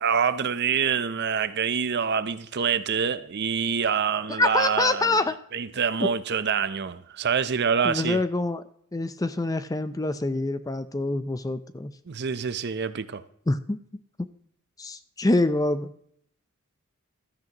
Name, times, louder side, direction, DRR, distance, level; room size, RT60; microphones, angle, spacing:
voice 1, 0.0-5.1 5.5-8.2 12.1-13.2, right 6 dB, 50° right, 0.6 m, -26 dB
voice 2, 4.4-5.3 6.0-6.1 7.8-8.6 8.9-11.9 13.5-13.8 14.8-15.9, left 2 dB, 15° left, 0.5 m, -25 dB
15.5 x 13.0 x 2.9 m
head